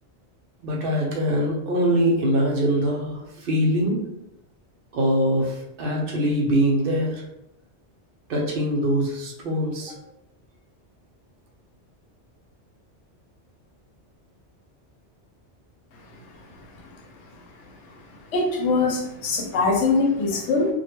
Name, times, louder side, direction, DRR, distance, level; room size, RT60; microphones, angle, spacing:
voice 1, 0.6-4.0 4.9-5.5 5.8-7.1 8.3-9.9, equal, 65° right, -1 dB, 0.7 m, -23 dB
voice 2, 18.3-20.7, left 3 dB, 90° left, 0 dB, 0.9 m, -22 dB
2.2 x 2.1 x 2.9 m, 0.84 s
omnidirectional pair, 1.2 m